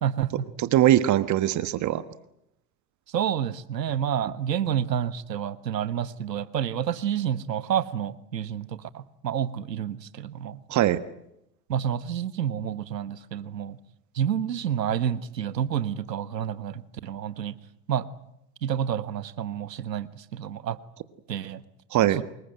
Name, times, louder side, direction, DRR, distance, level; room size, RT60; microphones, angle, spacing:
voice 1, 0.0-0.5 3.1-10.6 11.7-13.8 14.1-17.5 17.9-18.1 18.6-20.8 21.3-21.6 22.2-22.3, right 9 dB, 85° right, 16 dB, 1.4 m, -29 dB
voice 2, 0.6-2.0 10.7-11.0 21.9-22.2, right 13 dB, 35° right, 14 dB, 1.3 m, -21 dB
26.0 x 21.5 x 9.2 m, 0.81 s
hypercardioid pair, 95°, 48 cm